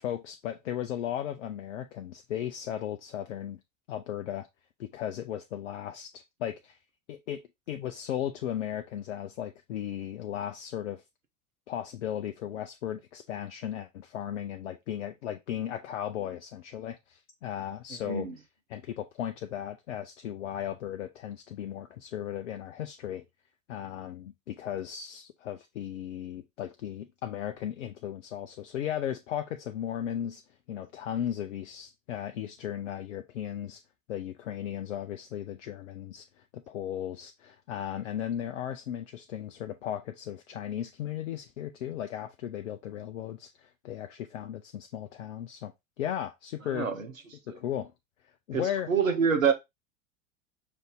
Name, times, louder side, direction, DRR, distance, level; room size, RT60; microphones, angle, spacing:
voice 1, 0.0-3.6 3.9-4.5 4.8-6.8 7.1-7.4 7.7-11.0 11.7-18.3 18.7-23.2 23.7-30.4 30.7-33.8 34.1-45.7 46.0-46.9 47.5-47.9 48.5-48.9, left 10 dB, 65° left, 0.6 m, -36 dB
voice 2, 18.0-18.4 46.7-47.1 47.5-47.6 48.5-49.5, right 6 dB, 80° right, 1.0 m, -26 dB
5.5 x 2.7 x 3.5 m
figure-of-eight pair, 85°, 40 cm